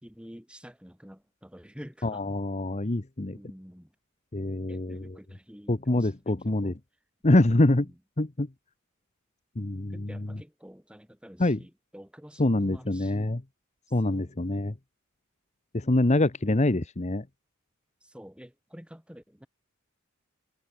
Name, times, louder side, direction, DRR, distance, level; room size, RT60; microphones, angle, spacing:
voice 1, 0.0-2.2 3.3-3.9 4.7-6.7 7.4-8.0 9.9-13.1 14.0-14.4 18.0-19.5, equal, 5° right, 2.9 m, -48 dB
voice 2, 2.0-3.4 4.3-5.2 5.7-6.7 7.2-7.9 8.2-8.5 9.6-10.3 11.4-11.6 12.4-13.4 13.9-14.7 15.7-17.2, left 2 dB, 30° left, 1.0 m, -25 dB
head